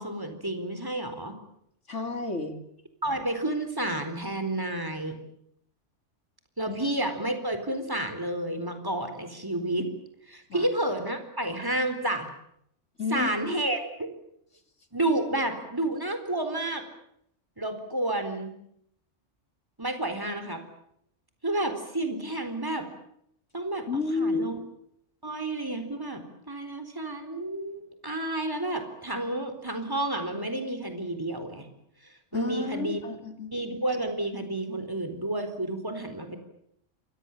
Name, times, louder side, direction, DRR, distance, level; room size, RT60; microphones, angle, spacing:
voice 1, 0.0-1.4 3.0-5.2 6.6-9.9 10.3-12.3 13.1-14.1 14.9-16.8 17.6-18.5 19.8-20.6 21.4-22.9 23.5-23.8 24.2-24.6 25.2-31.7 32.3-33.0 33.5-36.4, right 1 dB, 15° right, 7 dB, 4.1 m, -30 dB
voice 2, 1.9-2.6 6.7-6.8 10.5-10.7 13.0-13.7 23.9-24.7 32.3-33.5, left 3 dB, 75° left, 6 dB, 3.5 m, -31 dB
28.0 x 24.0 x 7.4 m, 0.73 s
omnidirectional pair, 1.3 m